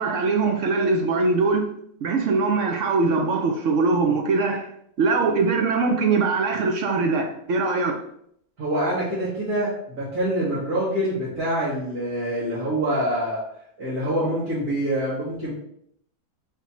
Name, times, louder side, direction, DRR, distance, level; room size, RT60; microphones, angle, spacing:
voice 1, 0.0-1.7 2.0-4.7 5.0-8.0, right 4 dB, 65° right, 0.8 m, -22 dB
voice 2, 8.6-13.4 13.8-15.5, right 1 dB, 80° right, 2.0 m, -25 dB
4.2 x 2.8 x 4.1 m
omnidirectional pair, 1.6 m